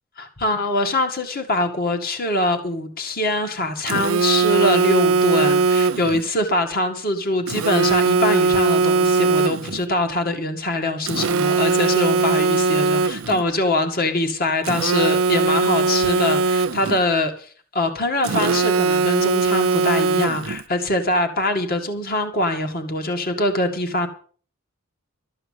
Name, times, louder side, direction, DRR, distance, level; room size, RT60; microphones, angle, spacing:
voice 1, 0.2-24.1, left 2 dB, 45° left, 6 dB, 2.0 m, -23 dB
Telephone, 3.9-6.2 7.5-9.8 11.1-13.4 14.7-17.0 18.2-20.6, right 4 dB, 70° right, 0.6 m, -20 dB
13.0 x 8.8 x 7.8 m, 0.43 s
head